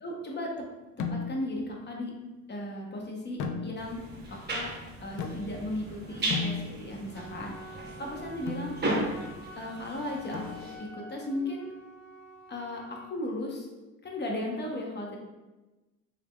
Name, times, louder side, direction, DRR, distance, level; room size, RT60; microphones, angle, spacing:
voice 1, 0.0-0.7 1.1-2.1 2.5-4.0 4.3-4.7 5.0-8.7 9.5-10.4 10.8-11.7 12.5-13.7 14.0-15.2, left 1 dB, 35° left, -1 dB, 0.8 m, -36 dB
sound 1, 1.0-1.6 3.4-4.1 5.2-5.8 6.3-7.1 8.5-8.8 10.3-11.0, left 5 dB, 85° left, 0.5 m, -36 dB
sound 2, 3.8-10.8, right 1 dB, 35° right, 1.0 m, -36 dB
Wind instrument woodwind instrument, 7.1-13.2, equal, 5° left, 1.2 m, -48 dB
3.6 x 3.5 x 2.2 m, 1.1 s
cardioid pair, 90°, 30 cm